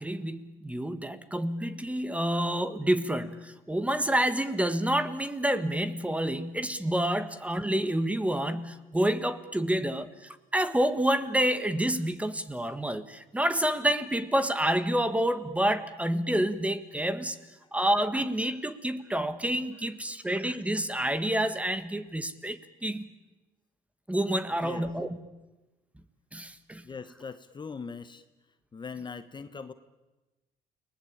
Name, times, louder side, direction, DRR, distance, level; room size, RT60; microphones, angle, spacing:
voice 1, 0.0-17.4 17.7-23.1 24.1-25.2 26.3-26.8, right 1 dB, 10° right, 12 dB, 1.7 m, -28 dB
voice 2, 26.8-28.2 28.7-29.7, left 5 dB, 25° left, 11 dB, 1.2 m, -41 dB
30.0 x 20.5 x 8.8 m, 1.1 s
cardioid pair, 110°, 17 cm